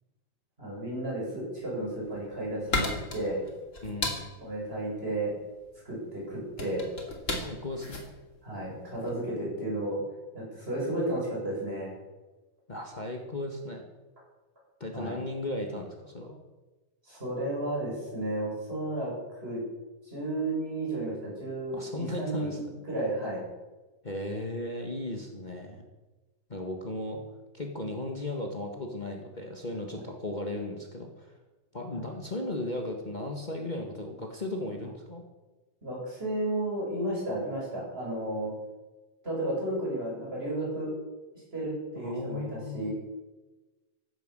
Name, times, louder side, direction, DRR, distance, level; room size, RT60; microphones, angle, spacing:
voice 1, 0.6-3.4 4.4-5.3 5.8-6.8 8.4-10.0 10.3-12.0 14.9-15.2 17.0-19.6 20.0-22.6 22.9-23.4 29.9-30.0 31.8-32.0 35.8-38.5 39.2-40.9 41.5-42.9, right 1 dB, 15° right, -4 dB, 8.1 m, -33 dB
sound 1, 1.8-9.3, left 2 dB, 25° left, 2.6 m, -36 dB
voice 2, 3.8-4.3 7.4-8.0 12.7-13.8 14.8-16.4 21.7-22.7 24.0-25.8 26.5-27.2 27.5-31.4 31.7-35.2 41.9-42.9, left 1 dB, 45° left, 2 dB, 0.5 m, -36 dB
15.5 x 12.0 x 7.5 m, 1.2 s
omnidirectional pair, 3.7 m